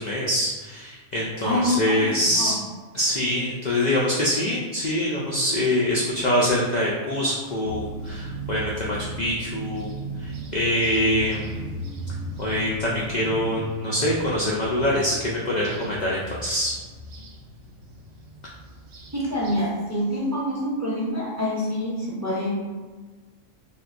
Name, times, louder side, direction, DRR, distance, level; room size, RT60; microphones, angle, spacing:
voice 1, 0.0-2.6 2.9-9.9 10.2-11.6 12.4-16.7, left 1 dB, 80° left, -4 dB, 0.4 m, -24 dB
voice 2, 1.4-2.6 19.1-22.5, left 1 dB, 20° right, -8 dB, 0.6 m, -26 dB
sound 1, 7.6-19.6, right 1 dB, 90° right, 1.0 m, -36 dB
3.5 x 2.4 x 2.5 m, 1.4 s
omnidirectional pair, 1.3 m